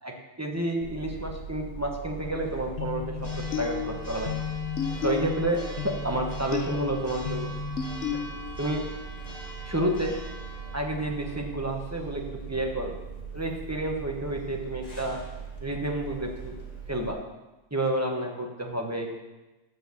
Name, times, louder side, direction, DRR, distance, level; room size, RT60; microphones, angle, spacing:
voice 1, 0.0-4.3 5.0-7.5 8.1-8.2 8.6-8.9 9.6-10.1 10.7-12.9 13.3-15.2 15.6-16.5 16.9-17.2 17.7-19.1, right 1 dB, 10° right, 0 dB, 1.1 m, -30 dB
Church bell, 0.8-17.1, right 5 dB, 25° left, 1.5 m, -39 dB
sound 1, 2.8-8.7, left 8 dB, 60° left, 1.0 m, -34 dB
8.9 x 6.5 x 7.2 m, 1.1 s
omnidirectional pair, 1.6 m